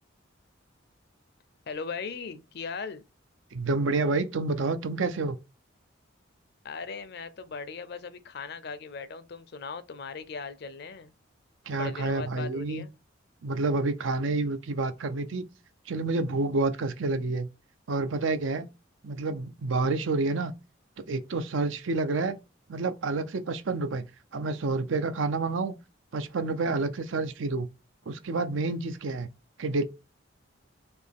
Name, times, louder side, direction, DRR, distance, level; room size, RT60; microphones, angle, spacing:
voice 1, 1.7-3.0 6.6-11.1 11.7-12.9, left 5 dB, 55° left, 0.5 m, -38 dB
voice 2, 3.5-5.4 11.7-12.8 13.4-15.5 15.9-17.5 17.9-18.7 19.0-20.5 21.1-22.4 22.7-24.1 24.3-25.7 26.1-27.7 28.1-29.3 29.6-29.8, right 3 dB, 80° right, 0.5 m, -29 dB
4.3 x 2.8 x 3.5 m
head